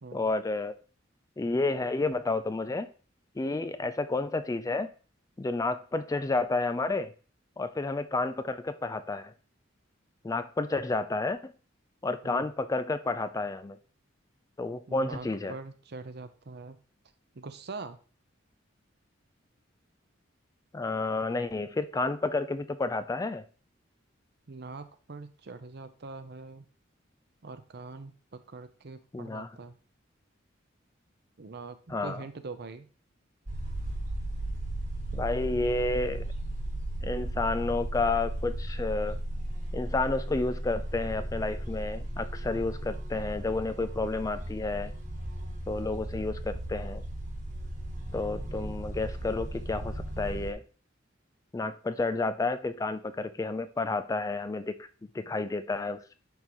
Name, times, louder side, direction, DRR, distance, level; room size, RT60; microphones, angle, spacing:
voice 1, 0.1-0.7 1.4-2.9 3.4-4.9 5.4-7.1 7.6-9.3 10.2-11.5 12.0-13.8 14.6-15.6 20.7-23.4 29.1-29.5 31.9-32.2 35.1-36.2 37.0-39.2 39.7-44.9 45.7-47.0 48.1-50.6 51.5-56.1, left 3 dB, 15° left, 11 dB, 0.3 m, -31 dB
voice 2, 14.9-16.8 17.3-18.0 24.5-26.7 27.4-29.8 31.4-32.9, right 3 dB, 55° right, 11 dB, 0.7 m, -43 dB
sound 1, 33.5-50.5, right 1 dB, 40° right, 1.3 m, -36 dB
10.5 x 3.7 x 3.0 m, 0.39 s
head